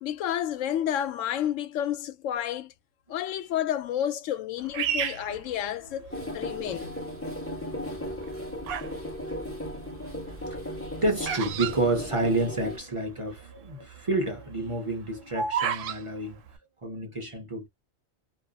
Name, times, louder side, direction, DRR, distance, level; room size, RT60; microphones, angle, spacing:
voice 1, 0.0-2.7 3.1-7.0, left 10 dB, 85° left, 1.0 m, -30 dB
Bird vocalization bird call bird song, 4.7-6.3 6.9-7.3 8.1-9.0 9.3-12.8 13.0-13.1 13.3-13.7 14.1-16.0, right 7 dB, 90° right, 1.0 m, -32 dB
voice 2, 5.6-5.9 6.2-6.3 6.7-6.8 8.3-8.4 8.9-9.0 10.3-16.4 16.8-17.7, right 2 dB, 30° right, 0.7 m, -30 dB
sound 1, 6.1-12.8, equal, 10° left, 1.2 m, -36 dB
2.5 x 2.4 x 2.4 m
omnidirectional pair, 1.3 m